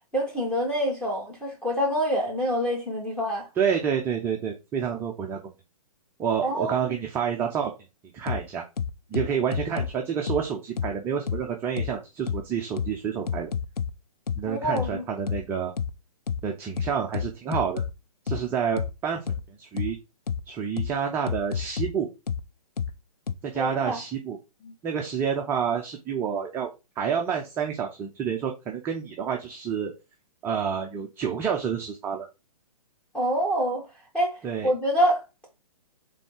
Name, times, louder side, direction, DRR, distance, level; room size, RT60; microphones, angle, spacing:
voice 1, 0.1-3.5 6.4-7.0 14.4-15.0 23.5-24.0 24.6-24.7 33.1-33.8 34.1-34.4 34.6-35.5, equal, 5° left, 1.7 m, -26 dB
voice 2, 3.6-5.4 6.2-7.7 8.1-8.6 9.1-13.5 14.4-15.7 16.4-17.8 18.2-20.0 20.5-22.1 23.4-24.4 24.8-26.7 27.0-29.9 30.4-32.3 34.4-34.7, right 7 dB, 10° right, 0.4 m, -28 dB
sound 1, 8.3-8.4 8.8-9.9 10.3-10.4 10.8-10.9 11.3-11.4 11.8-11.9 12.3-12.4 12.8-12.9 13.3-13.9 14.3-14.4 14.8-14.9 15.3-15.4 15.8-15.9 16.3-16.4 16.8-17.9 18.3-18.4 18.8-18.9 19.3-19.4 19.8-19.9 20.3-20.4 20.8-20.9 21.3-21.9 22.3-22.4 22.8-22.9 23.3-23.4, left 7 dB, 80° left, 0.5 m, -28 dB
3.7 x 3.5 x 3.7 m
figure-of-eight pair, 130°, 19 cm